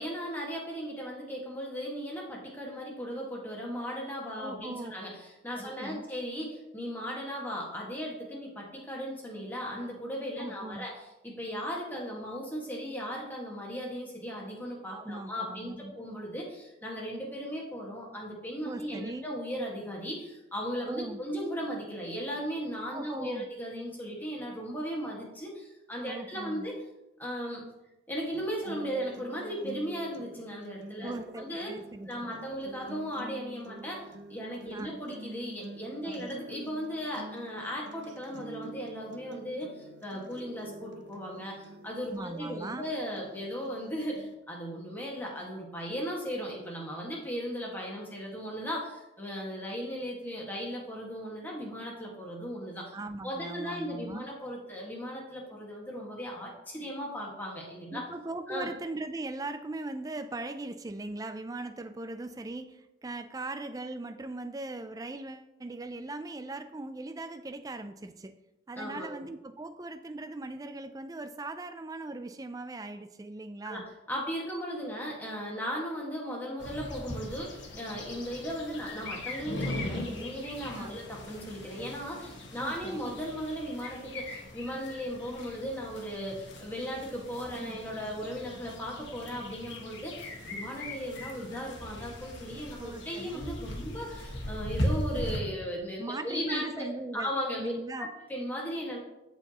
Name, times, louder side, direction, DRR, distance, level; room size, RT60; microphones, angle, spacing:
voice 1, 0.0-26.7 27.2-27.6 28.1-31.7 32.1-34.0 34.3-52.9 53.2-58.0 58.5-58.7 68.7-69.1 73.6-73.8 74.1-96.9 97.1-97.7 98.0-99.0, equal, 10° left, -3 dB, 1.7 m, -37 dB
voice 2, 4.4-4.9 5.6-6.0 10.4-10.8 14.9-16.0 18.6-19.2 20.9-21.2 22.9-23.5 26.0-26.7 31.0-32.4 34.7-35.0 36.0-36.3 42.1-42.9 52.9-54.3 57.9-68.4 68.7-73.9 80.8-81.0 82.6-83.1 87.6-87.8 92.8-93.5 96.0-97.3 97.6-98.1, right 2 dB, 15° right, 9 dB, 0.3 m, -39 dB
sound 1, 28.3-44.3, right 1 dB, 55° right, 0.7 m, -47 dB
sound 2, 76.6-95.4, left 1 dB, 60° left, 1.4 m, -39 dB
13.5 x 4.6 x 3.0 m, 0.96 s
head